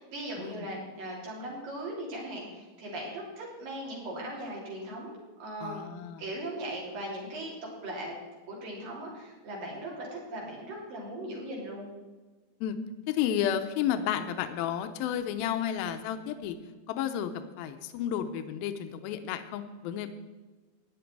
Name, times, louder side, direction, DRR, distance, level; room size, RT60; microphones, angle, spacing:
voice 1, 0.0-5.9 6.2-7.5 7.8-8.2 8.5-11.9, right 1 dB, 65° right, -3 dB, 5.3 m, -39 dB
voice 2, 5.6-6.2 12.6-12.8 13.1-16.6 16.9-17.3 17.6-20.1, left 10 dB, 85° left, 8 dB, 2.6 m, -32 dB
15.5 x 10.0 x 4.7 m, 1.3 s
omnidirectional pair, 4.3 m